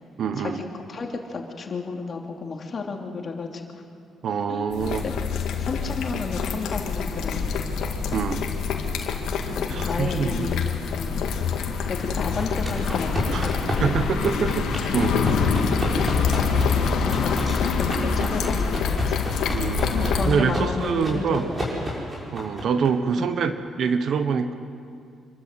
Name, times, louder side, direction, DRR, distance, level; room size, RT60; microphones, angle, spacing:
voice 1, 0.2-0.6 4.2-5.0 8.1-8.4 9.7-10.5 13.3-13.5 13.8-15.2 19.5-21.5 22.3-24.5, right 6 dB, 60° right, 10 dB, 1.3 m, -25 dB
voice 2, 0.9-3.8 4.5-4.7 5.0-5.1 5.5-7.7 9.5-10.6 11.0-11.2 11.9-13.5 13.8-14.1 16.5-19.1 20.0-21.9 23.2-23.4, left 4 dB, 45° left, 2 dB, 2.9 m, -32 dB
sound 1, 4.7-20.3, left 5 dB, 80° left, 2.0 m, -25 dB
sound 2, 12.4-22.9, equal, 25° right, 6.5 m, -32 dB
26.5 x 13.0 x 8.0 m, 2.4 s
cardioid pair, 90°, 0 cm